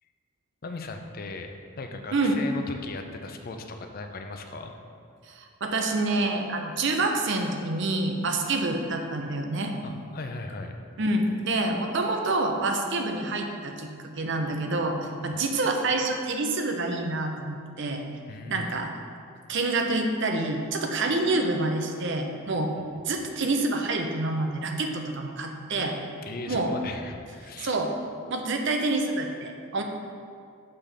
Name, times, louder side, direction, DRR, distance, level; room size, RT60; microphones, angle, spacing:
voice 1, 0.6-4.7 9.8-10.8 18.3-18.8 26.2-27.8, left 3 dB, 45° left, 5 dB, 0.5 m, -38 dB
voice 2, 5.3-9.7 11.0-18.1 18.5-18.9 19.5-22.7 23.0-26.0 26.5-26.7 27.6-27.9 28.3-29.8, right 2 dB, 60° right, 3 dB, 0.6 m, -27 dB
6.6 x 3.4 x 5.6 m, 2.3 s
head